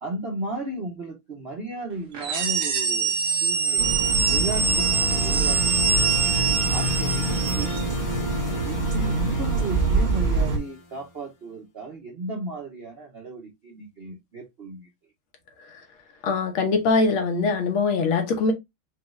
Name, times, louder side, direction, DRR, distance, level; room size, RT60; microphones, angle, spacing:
voice 1, 0.0-4.0 4.3-6.1 6.7-7.8 8.3-14.9, right 2 dB, 75° right, 0.5 m, -35 dB
sound 1, 2.1-7.8, right 5 dB, 55° right, 0.9 m, -24 dB
sound 2, 2.9-11.1, left 2 dB, 60° left, 1.2 m, -36 dB
sound 3, 3.8-10.6, right 3 dB, 30° right, 1.0 m, -26 dB
voice 2, 16.2-18.5, left 4 dB, 75° left, 1.8 m, -22 dB
5.0 x 2.3 x 3.0 m
omnidirectional pair, 2.3 m